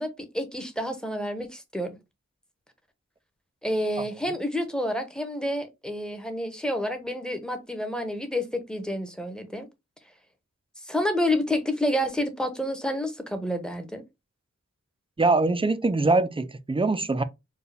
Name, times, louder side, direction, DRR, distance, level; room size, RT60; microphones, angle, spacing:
voice 1, 0.0-1.9 3.6-9.7 10.8-14.0, left 1 dB, 5° left, 0.9 m, -29 dB
voice 2, 15.2-17.2, right 3 dB, 20° right, 0.4 m, -23 dB
4.6 x 2.3 x 3.2 m
wide cardioid pair, 65°, 30 cm